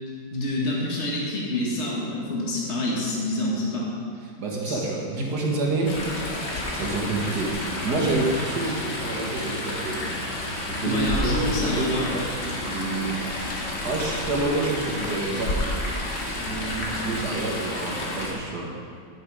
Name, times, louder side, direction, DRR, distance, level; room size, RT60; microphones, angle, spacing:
voice 1, 0.3-3.9 4.7-4.8 10.8-12.1 15.3-15.4, left 1 dB, 40° left, -4 dB, 2.1 m, -27 dB
voice 2, 4.4-5.9 6.7-10.1 10.7-12.3 12.6-15.6 16.5-18.7, right 3 dB, 65° right, -2 dB, 2.2 m, -28 dB
Chatter / Stream, 5.9-18.3, left 1 dB, 85° left, 2.5 m, -30 dB
10.5 x 9.2 x 5.0 m, 2.2 s
omnidirectional pair, 1.9 m